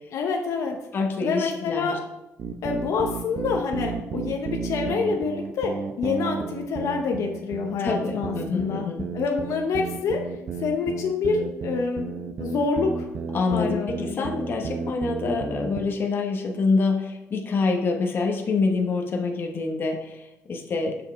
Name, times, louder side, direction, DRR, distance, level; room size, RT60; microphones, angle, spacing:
voice 1, 0.1-0.8 1.2-2.0 2.6-8.9 9.1-10.2 10.6-13.1 13.5-14.3, left 5 dB, 70° left, 3 dB, 0.8 m, -27 dB
voice 2, 0.9-2.0 7.8-9.0 13.3-21.0, left 4 dB, 40° left, 2 dB, 1.0 m, -26 dB
sound 1, 2.4-15.9, right 5 dB, 50° right, 0.7 m, -32 dB
7.1 x 5.4 x 4.5 m, 0.95 s
cardioid pair, 145°, 5 cm